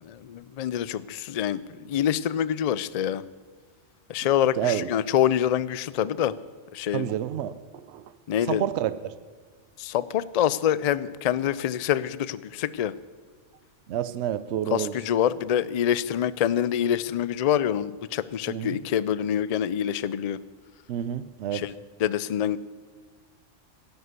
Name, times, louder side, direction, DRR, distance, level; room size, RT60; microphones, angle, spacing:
voice 1, 0.0-3.2 4.1-6.3 6.7-7.1 8.3-8.6 9.8-12.9 14.7-20.4 21.5-21.7 22.0-22.6, left 10 dB, 65° left, 17 dB, 0.3 m, -26 dB
voice 2, 4.6-4.9 6.9-8.1 8.5-9.1 13.9-14.9 18.5-18.8 20.9-21.6, right 10 dB, 70° right, 15 dB, 0.9 m, -29 dB
13.0 x 11.0 x 8.1 m, 1.5 s
omnidirectional pair, 1.3 m